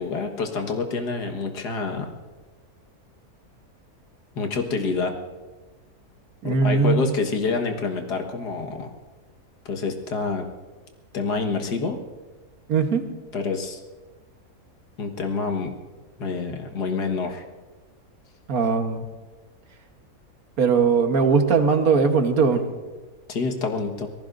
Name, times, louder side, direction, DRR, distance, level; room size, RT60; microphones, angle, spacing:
voice 1, 0.0-2.1 4.4-5.2 6.4-8.9 9.7-10.5 11.1-12.0 13.3-13.8 15.0-15.7 16.2-17.4 23.3-24.1, left 4 dB, 90° left, 3 dB, 2.0 m, -27 dB
voice 2, 6.4-7.1 12.7-13.0 18.5-19.1 20.6-22.6, right 5 dB, 65° right, 6 dB, 1.6 m, -20 dB
26.5 x 18.5 x 2.6 m, 1.3 s
omnidirectional pair, 1.7 m